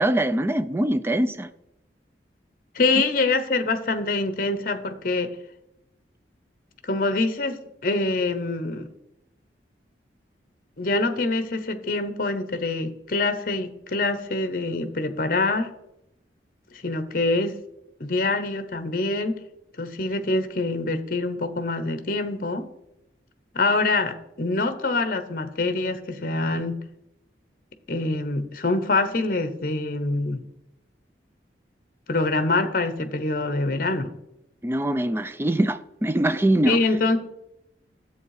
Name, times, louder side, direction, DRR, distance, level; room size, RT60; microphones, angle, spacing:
voice 1, 0.0-1.5 34.6-36.8, right 1 dB, 15° right, 0.4 m, -23 dB
voice 2, 2.7-5.3 6.8-8.9 10.8-15.7 16.7-17.6 18.0-19.4 19.8-22.7 23.5-26.8 27.9-30.4 32.1-34.1 36.7-37.2, left 3 dB, 50° left, 0.9 m, -25 dB
10.5 x 7.9 x 4.8 m
head